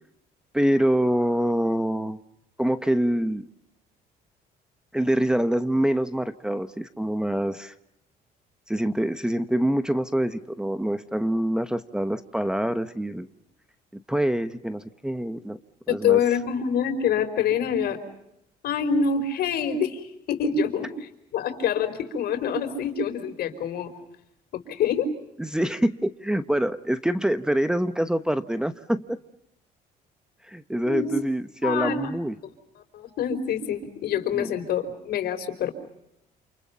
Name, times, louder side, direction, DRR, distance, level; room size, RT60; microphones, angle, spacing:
voice 1, 0.5-2.2 2.6-3.4 4.9-7.7 8.7-13.3 14.1-15.6 15.9-16.2 25.4-29.2 30.4-32.3 34.3-34.5, right 1 dB, 5° right, 11 dB, 1.1 m, -25 dB
voice 2, 15.9-18.0 18.6-23.9 24.5-25.1 30.8-31.1 31.6-32.1 32.9-35.7, left 7 dB, 70° left, 7 dB, 4.9 m, -26 dB
29.0 x 28.5 x 5.7 m, 0.82 s
cardioid pair, 110°, 17 cm